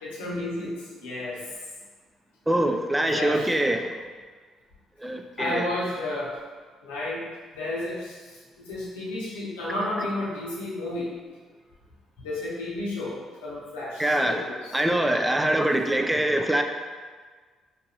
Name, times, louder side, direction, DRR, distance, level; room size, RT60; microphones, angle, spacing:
voice 1, 0.0-1.4 3.0-3.6 5.4-6.4 6.8-7.2 7.5-8.2 8.6-11.1 12.2-15.2 16.3-16.5, left 1 dB, 90° left, -5 dB, 0.7 m, -32 dB
voice 2, 2.5-3.9 5.0-5.7 14.0-14.5 14.7-16.6, right 1 dB, 10° right, 4 dB, 0.3 m, -24 dB
3.9 x 2.5 x 2.7 m, 1.5 s
hypercardioid pair, 55°, 0 cm